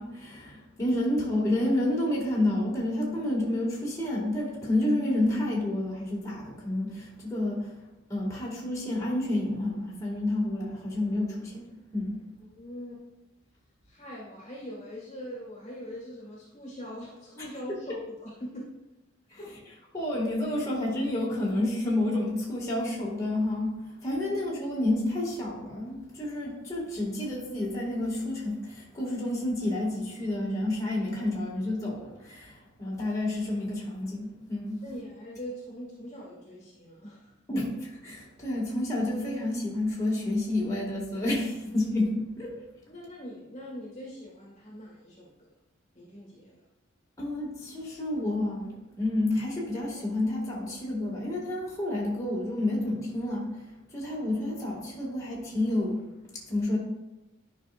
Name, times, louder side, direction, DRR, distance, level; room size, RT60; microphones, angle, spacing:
voice 1, 0.0-7.7 8.1-12.2 19.3-19.4 19.9-34.8 37.5-42.5 47.2-53.7 53.9-56.0 56.5-56.8, left 1 dB, 15° left, -6 dB, 2.0 m, -29 dB
voice 2, 12.5-13.0 13.8-18.7 19.4-19.5 24.2-24.4 34.8-37.3 42.9-45.5 46.0-46.6, equal, 35° left, -4 dB, 1.8 m, -42 dB
11.0 x 5.7 x 2.5 m, 1.0 s
head